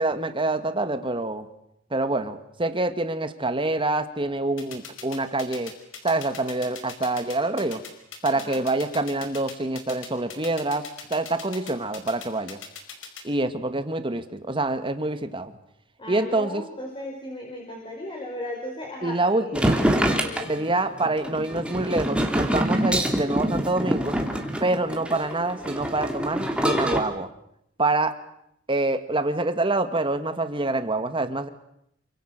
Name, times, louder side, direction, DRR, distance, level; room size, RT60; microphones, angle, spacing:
voice 1, 0.0-1.5 1.9-5.7 6.0-7.8 8.2-10.8 11.1-12.6 13.2-15.5 16.1-16.6 19.0-19.8 20.5-24.2 24.6-27.3 27.8-28.2 28.7-31.5, right 2 dB, 25° right, 9 dB, 1.9 m, -26 dB
sound 1, 4.6-13.2, left 7 dB, 80° left, 5.1 m, -39 dB
voice 2, 8.3-8.6 16.0-19.6 20.0-20.6, left 1 dB, 25° left, 0 dB, 5.4 m, -36 dB
sound 2, 19.6-27.0, equal, 5° right, 3.0 m, -25 dB
28.0 x 25.5 x 6.7 m, 0.76 s
head